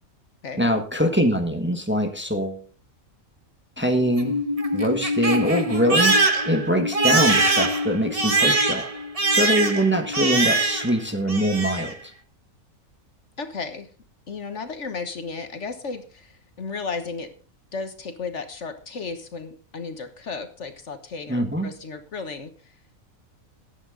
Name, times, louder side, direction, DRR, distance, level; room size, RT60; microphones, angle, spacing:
voice 1, 0.6-2.6 3.8-4.3 4.7-6.1 6.4-8.8 9.3-11.9 21.3-21.7, equal, 10° right, 4 dB, 1.4 m, -23 dB
Crying sobbing, 4.0-11.0 11.3-11.9, right 2 dB, 25° right, 1.2 m, -23 dB
voice 2, 13.4-13.9 14.3-17.3 17.7-22.7, left 4 dB, 60° left, 8 dB, 1.5 m, -34 dB
14.5 x 10.0 x 3.8 m, 0.37 s
omnidirectional pair, 1.4 m